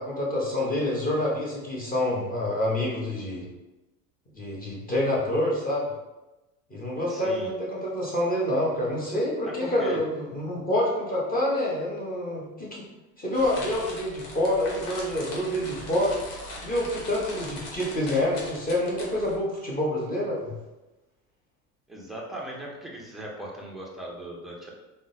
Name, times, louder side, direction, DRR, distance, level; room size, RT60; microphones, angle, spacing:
voice 1, 0.0-3.5 4.3-5.9 6.7-12.8 13.2-16.2 16.6-20.5, left 1 dB, 20° left, -5 dB, 1.0 m, -27 dB
voice 2, 7.1-7.5 9.5-10.0 21.9-24.7, right 1 dB, ahead, -3 dB, 0.4 m, -38 dB
sound 1, 13.3-19.4, left 1 dB, 80° left, 1.0 m, -40 dB
3.6 x 2.1 x 2.6 m, 1.1 s
hypercardioid pair, 95°, 46 cm